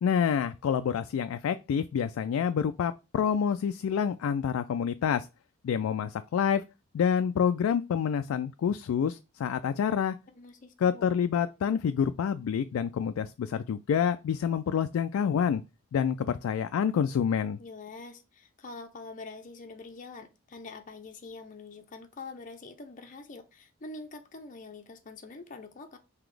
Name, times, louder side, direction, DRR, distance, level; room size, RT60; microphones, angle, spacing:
voice 1, 0.0-5.3 5.6-6.6 6.9-10.2 10.8-15.6 15.9-17.6, left 7 dB, 80° left, 0.3 m, -27 dB
voice 2, 10.3-11.1 17.6-26.0, left 3 dB, 40° left, 0.6 m, -45 dB
3.9 x 2.9 x 4.6 m
head